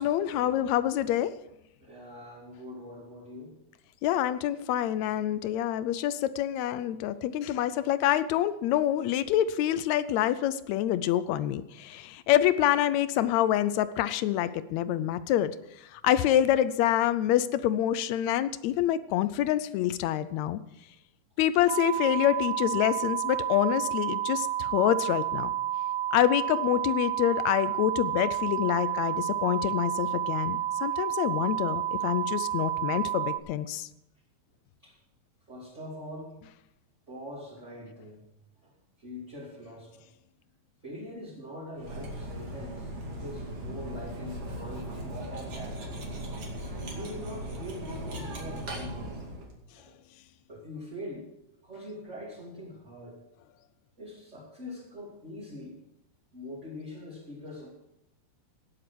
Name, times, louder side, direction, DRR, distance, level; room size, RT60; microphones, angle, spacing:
voice 1, 0.0-1.3 4.0-15.5 15.9-20.6 21.4-25.5 26.1-33.9, left 12 dB, 80° left, 14 dB, 1.7 m, -26 dB
voice 2, 1.8-3.5 34.8-34.9 35.5-36.3 37.1-38.2 38.6-38.7 39.0-40.0 40.8-45.8 46.8-49.2 49.8-50.0 50.5-51.2 51.6-53.2 54.0-55.8 56.3-57.7, left 1 dB, 25° right, -6 dB, 2.8 m, -43 dB
sound 1, 21.7-33.4, right 12 dB, 85° right, 2.4 m, -30 dB
Cutlery silverware, 41.8-49.5, right 1 dB, 50° right, 3.2 m, -38 dB
18.0 x 7.7 x 6.1 m, 0.84 s
omnidirectional pair, 3.6 m